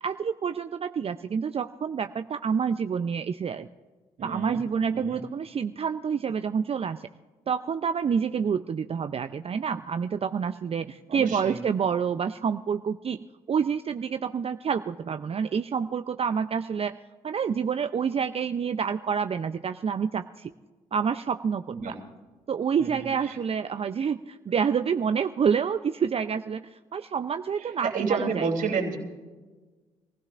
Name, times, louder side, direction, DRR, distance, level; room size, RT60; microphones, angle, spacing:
voice 1, 0.0-3.7 4.2-7.1 7.5-13.2 13.5-17.0 17.2-20.5 20.9-21.8 22.5-28.5, right 6 dB, 40° right, 10 dB, 0.5 m, -28 dB
voice 2, 4.2-4.6 4.9-5.2 11.1-11.6 21.7-22.0 22.8-23.4 27.6-29.0, right 5 dB, 60° right, 1 dB, 3.0 m, -30 dB
25.5 x 16.0 x 2.5 m, 1.3 s
hypercardioid pair, 45°, 15 cm